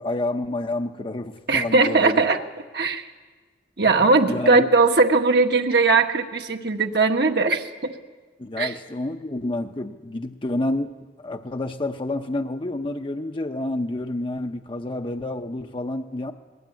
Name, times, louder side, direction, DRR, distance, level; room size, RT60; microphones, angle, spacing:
voice 1, 0.0-2.2 4.3-4.7 8.4-10.9 11.2-16.3, left 2 dB, 30° left, 5 dB, 0.7 m, -29 dB
voice 2, 1.5-2.4 2.7-3.1 3.8-7.9 8.6-8.7, right 3 dB, 65° right, 4 dB, 1.5 m, -19 dB
20.5 x 20.0 x 9.5 m, 1.4 s
head